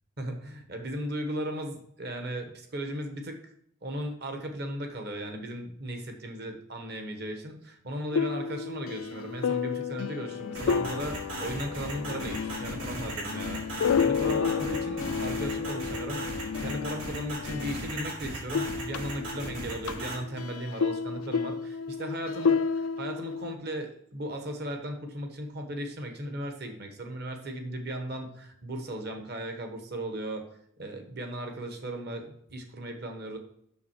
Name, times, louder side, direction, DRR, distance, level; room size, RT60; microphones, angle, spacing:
voice 1, 0.2-3.4 3.8-30.5 30.8-33.4, right 1 dB, 50° right, 4 dB, 1.3 m, -36 dB
sound 1, 8.1-18.1 18.4-23.5, left 6 dB, 85° left, 0.4 m, -31 dB
sound 2, 10.5-20.1, right 1 dB, 70° right, 3.8 m, -37 dB
7.2 x 6.5 x 4.7 m, 0.69 s
head